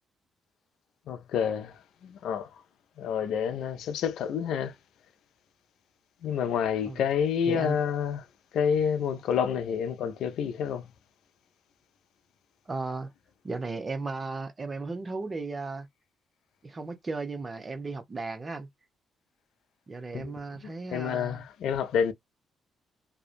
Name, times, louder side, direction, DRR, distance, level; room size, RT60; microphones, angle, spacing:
voice 1, 1.1-2.5 3.0-4.7 6.2-8.2 8.5-10.9 20.1-20.3 20.6-22.1, left 7 dB, 75° left, 0.4 m, -28 dB
voice 2, 7.5-7.8 12.7-13.1 13.4-15.9 16.6-18.7 19.9-21.5, right 3 dB, 35° right, 0.7 m, -35 dB
2.5 x 2.1 x 2.4 m
supercardioid pair, 60°, 0 cm